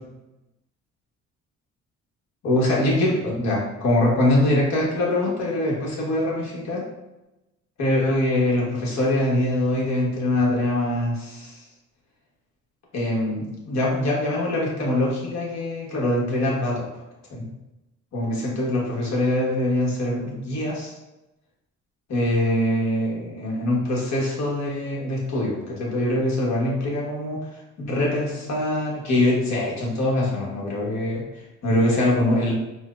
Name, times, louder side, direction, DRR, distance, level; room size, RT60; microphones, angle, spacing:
voice 1, 2.4-6.9 7.8-11.6 12.9-16.9 17.3-17.5 18.1-20.9 22.1-27.5 27.8-32.5, left 1 dB, 65° left, -3 dB, 1.2 m, -23 dB
4.4 x 2.0 x 2.4 m, 0.98 s
cardioid pair, 90°, 30 cm